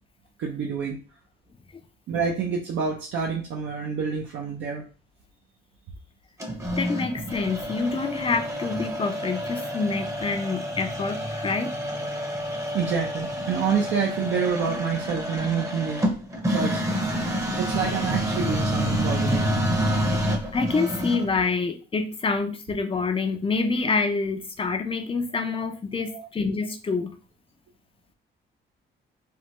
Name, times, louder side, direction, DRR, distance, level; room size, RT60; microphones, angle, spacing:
voice 1, 0.4-1.0 2.1-4.9 12.7-16.1 16.5-17.0 17.6-19.5 26.0-26.3, right 6 dB, 70° right, 0 dB, 0.6 m, -28 dB
sound 1, 6.4-21.4, equal, 15° right, 0.7 m, -28 dB
voice 2, 6.8-11.7 20.5-27.2, left 4 dB, 25° left, 7 dB, 0.4 m, -27 dB
3.3 x 2.1 x 2.9 m, 0.35 s
cardioid pair, 90°, 20 cm